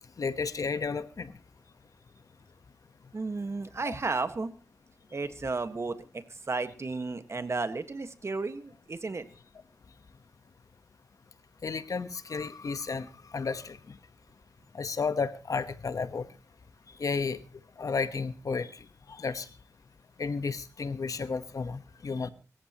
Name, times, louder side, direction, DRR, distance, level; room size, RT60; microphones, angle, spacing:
voice 1, 0.2-1.3 3.9-4.0 11.6-14.0 14.7-16.3 17.0-17.4 17.8-19.5 20.2-22.3, left 4 dB, 75° left, 13 dB, 1.1 m, -33 dB
voice 2, 3.1-4.5 5.1-9.3, right 3 dB, 50° right, 10 dB, 1.6 m, -33 dB
25.5 x 14.5 x 3.0 m, 0.33 s
wide cardioid pair, 80°, 6 cm